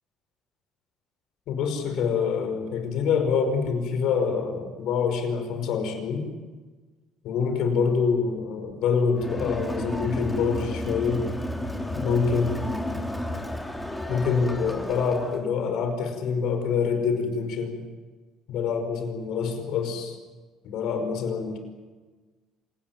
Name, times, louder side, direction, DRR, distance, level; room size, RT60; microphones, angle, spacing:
voice 1, 1.5-6.3 7.2-11.3 11.9-12.9 14.1-17.8 18.5-20.2 20.6-21.6, left 5 dB, 75° left, 6 dB, 5.4 m, -26 dB
Crowd, 9.1-15.5, left 1 dB, 5° left, 2.9 m, -32 dB
27.5 x 18.5 x 9.5 m, 1.3 s
cardioid pair, 120°, 0 cm